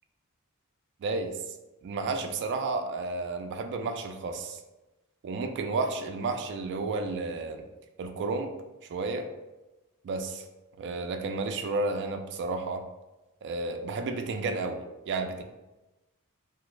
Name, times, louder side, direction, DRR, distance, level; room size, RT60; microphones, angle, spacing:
voice 1, 1.0-1.6 1.8-4.6 5.2-7.7 8.0-8.5 8.9-9.3 10.0-10.4 10.8-12.8 13.4-15.4, right 3 dB, 55° right, 6 dB, 0.3 m, -32 dB
3.0 x 2.4 x 3.1 m, 1.1 s
head